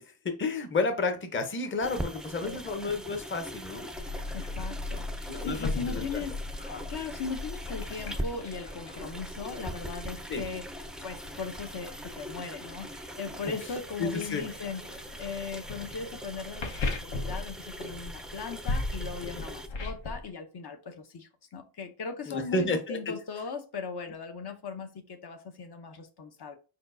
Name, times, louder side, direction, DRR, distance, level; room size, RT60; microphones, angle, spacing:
voice 1, 0.0-3.9 5.3-6.2 6.6-6.8 10.3-10.4 14.0-14.4 22.3-23.0, left 3 dB, 25° left, 0.7 m, -31 dB
sound 1, 1.8-19.7, right 1 dB, ahead, 0.4 m, -42 dB
sound 2, 3.9-20.3, left 2 dB, 75° left, 1.1 m, -38 dB
voice 2, 4.3-10.7 11.0-26.6, left 5 dB, 55° left, 0.8 m, -38 dB
4.8 x 4.3 x 2.6 m
wide cardioid pair, 145°, 46 cm